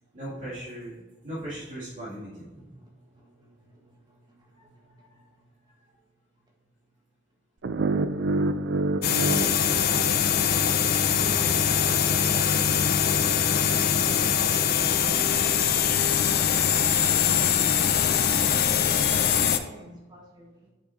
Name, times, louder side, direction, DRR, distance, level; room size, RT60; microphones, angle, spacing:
voice 1, 0.1-1.0 1.2-2.7 4.5-4.6 5.0-5.2 5.6-5.7, right 1 dB, 40° right, 2.3 m, -38 dB
voice 2, 2.7-5.4 10.8-20.7, right 1 dB, 20° right, 1.5 m, -45 dB
sound 1, 7.6-10.7, right 2 dB, 60° right, 0.4 m, -28 dB
sound 2, 9.0-19.6, left 8 dB, 50° left, 0.5 m, -23 dB
7.1 x 5.6 x 4.2 m
head